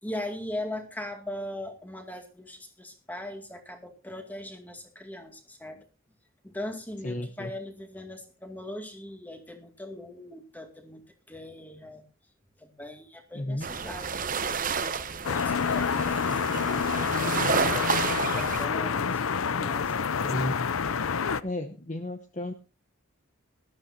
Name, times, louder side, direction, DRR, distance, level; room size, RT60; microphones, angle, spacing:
voice 1, 0.0-5.8 6.4-11.0 11.3-12.0 12.6-20.0, left 1 dB, 10° left, 5 dB, 2.2 m, -40 dB
voice 2, 7.0-7.5 13.3-13.7 20.2-20.5 21.4-22.5, left 1 dB, 35° left, 6 dB, 0.9 m, -33 dB
sound 1, 13.6-18.7, right 5 dB, 40° right, 0.9 m, -30 dB
sound 2, 15.2-21.4, left 6 dB, 80° left, 0.6 m, -28 dB
19.5 x 13.0 x 2.7 m, 0.33 s
head